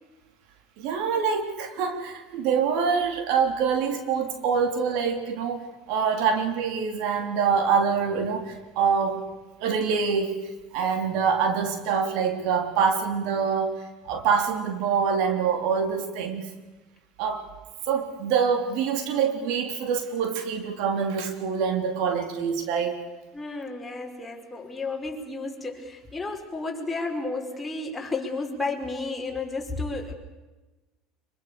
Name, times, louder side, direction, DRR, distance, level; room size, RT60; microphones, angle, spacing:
voice 1, 0.8-9.3 9.6-10.4 10.7-16.5 17.2-17.5 17.9-23.0, right 6 dB, 70° right, 6 dB, 3.6 m, -25 dB
voice 2, 23.3-30.1, left 3 dB, 15° left, 0 dB, 5.2 m, -32 dB
25.5 x 24.0 x 7.0 m, 1.1 s
supercardioid pair, 95°, 0 cm